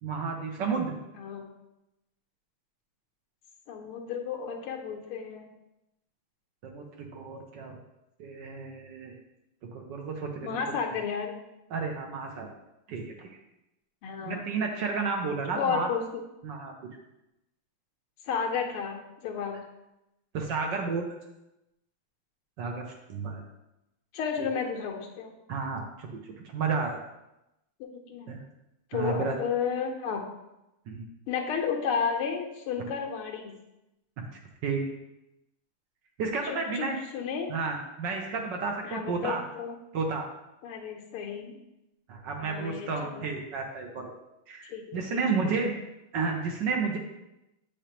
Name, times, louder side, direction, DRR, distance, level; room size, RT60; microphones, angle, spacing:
voice 1, 0.0-1.0 6.6-7.8 8.2-9.1 9.7-10.5 11.7-12.5 12.9-13.3 14.3-15.9 16.4-16.7 20.3-21.1 22.6-23.4 25.5-27.0 28.3-28.4 28.9-29.3 30.9-31.1 34.2-34.3 34.6-34.8 36.2-37.0 37.5-39.4 39.9-40.2 42.1-44.1 44.5-45.8 46.1-47.0, right 4 dB, 65° right, 2 dB, 1.2 m, -31 dB
voice 2, 1.1-1.5 3.7-5.5 10.4-11.3 14.0-14.4 15.6-16.0 18.3-19.6 24.1-25.3 27.8-28.3 28.9-30.2 31.3-33.5 36.4-37.5 38.8-39.7 40.6-41.6 42.4-43.3 44.7-45.2 45.6-45.7, left 6 dB, 80° left, 2 dB, 1.7 m, -32 dB
8.7 x 5.0 x 2.9 m, 0.92 s
omnidirectional pair, 2.4 m